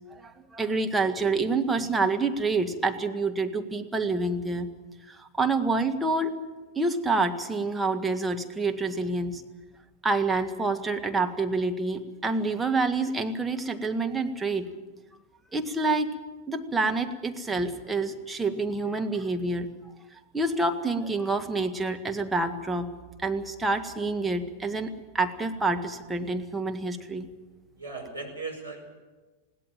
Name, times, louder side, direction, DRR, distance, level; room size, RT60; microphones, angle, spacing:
voice 1, 0.1-4.7 5.1-6.4 6.8-9.4 10.0-14.7 15.5-16.2 16.5-19.7 20.3-22.9 23.2-27.3, right 3 dB, 10° right, 5 dB, 1.7 m, -27 dB
voice 2, 27.8-28.8, right 3 dB, 85° right, 0 dB, 5.0 m, -37 dB
21.0 x 17.0 x 9.1 m, 1.2 s
figure-of-eight pair, 90°, 0 cm